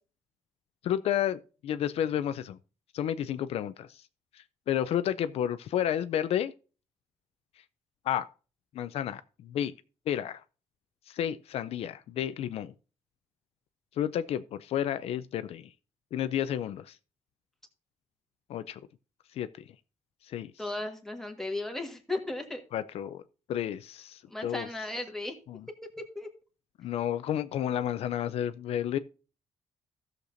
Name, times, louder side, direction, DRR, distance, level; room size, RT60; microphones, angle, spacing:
voice 1, 0.8-2.6 2.9-4.0 4.3-6.5 8.0-8.3 8.7-9.7 10.1-10.4 11.1-12.7 14.0-15.7 16.1-17.0 18.5-18.8 19.3-19.5 20.2-20.5 22.7-23.2 23.5-24.7 25.5-25.6 26.8-29.0, left 10 dB, 65° left, 0.4 m, -31 dB
voice 2, 20.6-22.6 24.3-25.3 26.1-26.3, left 2 dB, 5° left, 1.5 m, -35 dB
16.0 x 6.6 x 2.6 m
cardioid pair, 170°, 11 cm